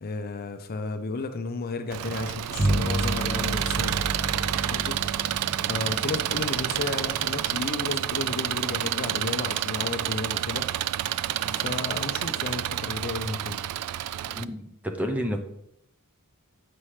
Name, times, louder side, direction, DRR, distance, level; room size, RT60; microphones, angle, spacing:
voice 1, 0.0-3.9 4.3-5.4 5.6-10.7 11.4-13.6, left 3 dB, 45° left, 8 dB, 0.5 m, -33 dB
Engine, 1.9-14.4, right 12 dB, 90° right, 0.3 m, -29 dB
Bowed string instrument, 2.6-8.2, right 1 dB, 25° right, 1.4 m, -31 dB
voice 2, 14.4-15.4, equal, 5° right, 4 dB, 0.6 m, -30 dB
8.5 x 5.6 x 3.2 m, 0.75 s
head